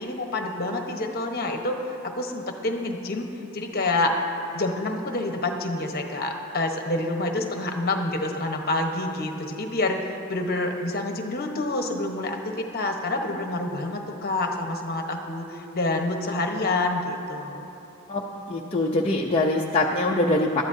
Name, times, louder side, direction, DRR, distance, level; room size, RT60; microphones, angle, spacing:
voice 1, 0.0-3.3 3.5-4.1 4.5-17.6, left 2 dB, 45° left, 3 dB, 1.1 m, -27 dB
voice 2, 18.1-20.6, left 2 dB, 25° left, -3 dB, 0.6 m, -23 dB
21.0 x 13.0 x 2.8 m, 2.9 s
head